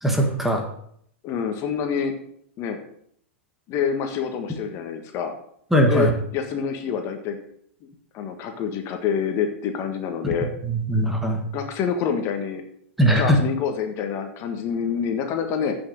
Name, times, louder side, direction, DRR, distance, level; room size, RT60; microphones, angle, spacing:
voice 1, 0.0-0.6 5.7-6.1 10.7-11.4 13.0-13.4, right 1 dB, 5° right, 2 dB, 1.6 m, -20 dB
voice 2, 1.2-2.1 2.6-2.8 3.7-5.3 5.9-7.4 8.1-10.5 11.5-12.6 13.1-15.8, left 7 dB, 40° left, 5 dB, 1.5 m, -27 dB
8.4 x 6.1 x 6.5 m, 0.67 s
hypercardioid pair, 110°, 7 cm